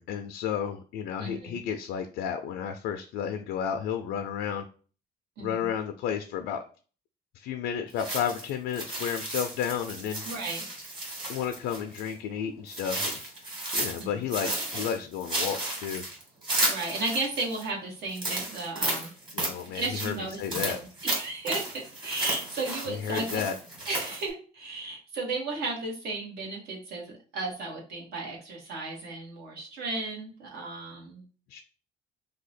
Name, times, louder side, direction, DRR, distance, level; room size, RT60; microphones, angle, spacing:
voice 1, 0.0-4.7 5.4-6.6 7.3-10.2 11.3-13.1 13.7-16.1 19.3-20.8 22.9-23.5 31.5-31.6, left 8 dB, 80° left, 5 dB, 0.4 m, -32 dB
voice 2, 1.2-1.6 5.4-5.7 10.2-10.7 14.0-14.2 16.7-19.1 19.7-20.4 20.7-23.4 23.9-31.2, right 3 dB, 70° right, -2 dB, 1.3 m, -34 dB
sound 1, 8.0-12.1 12.7-14.0 14.3-17.6 18.1-24.3, right 1 dB, 25° right, 1.7 m, -33 dB
2.8 x 2.3 x 4.1 m, 0.39 s
cardioid pair, 110°, 17 cm